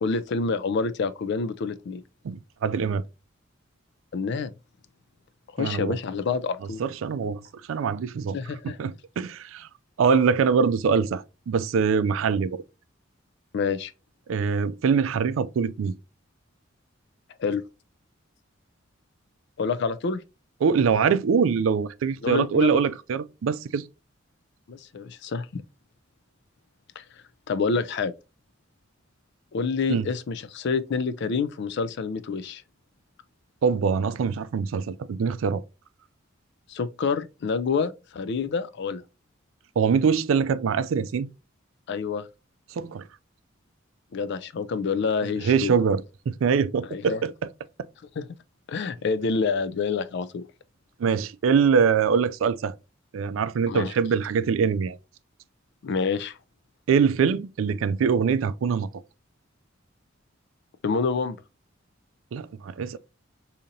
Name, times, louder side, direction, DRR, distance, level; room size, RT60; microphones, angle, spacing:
voice 1, 0.0-2.0 4.1-4.5 5.5-6.8 8.3-8.8 13.5-13.9 17.4-17.6 19.6-20.2 22.2-22.8 24.7-25.6 27.0-27.1 27.5-28.1 29.5-32.6 36.7-39.0 41.9-42.3 44.1-45.7 46.9-47.2 48.2-48.3 48.7-50.4 53.7-53.9 55.8-56.4 60.8-61.4, left 5 dB, 60° left, 0.4 m, -27 dB
voice 2, 2.2-3.0 5.6-6.0 6.8-7.4 7.7-8.4 8.6-9.7 10.0-12.6 14.3-15.9 20.6-23.8 29.9-30.0 33.6-35.6 39.8-41.3 42.8-43.1 45.4-47.3 51.0-52.7 53.1-55.0 56.9-58.9 62.3-63.0, right 6 dB, 85° right, 0.4 m, -23 dB
5.0 x 2.8 x 2.6 m
head